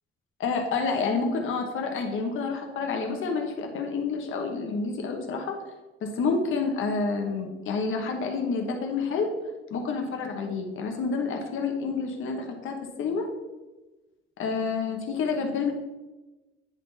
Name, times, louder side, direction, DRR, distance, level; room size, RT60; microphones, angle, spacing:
voice 1, 0.4-5.6 6.0-9.3 9.7-13.3 14.4-15.7, left 4 dB, 80° left, 2 dB, 1.2 m, -29 dB
9.8 x 3.8 x 4.1 m, 1.1 s
cardioid pair, 160°, 20 cm